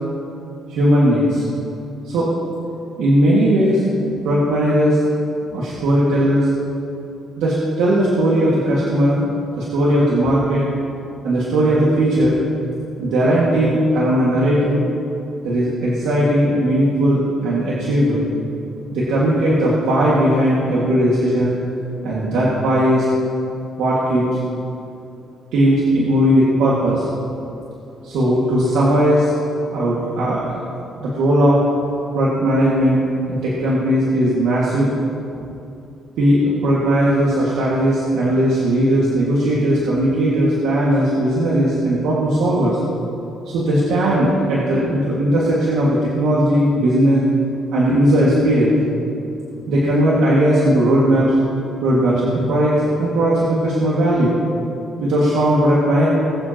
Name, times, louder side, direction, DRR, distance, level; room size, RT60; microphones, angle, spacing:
voice 1, 0.7-1.4 2.0-2.3 3.0-3.8 4.2-5.0 5.5-6.5 7.4-9.3 9.6-10.7 11.2-12.4 13.0-14.9 15.4-18.3 18.9-21.5 22.0-23.1 23.8-24.2 25.5-27.1 28.0-29.3 29.7-30.6 31.0-31.6 32.1-33.0 33.3-34.9 36.2-42.8 43.5-47.2 47.7-48.8 49.7-51.4 51.8-54.3 55.0-56.1, right 1 dB, 90° right, -6 dB, 2.0 m, -17 dB
21.0 x 7.6 x 3.0 m, 2.7 s
cardioid pair, 90°, 0 cm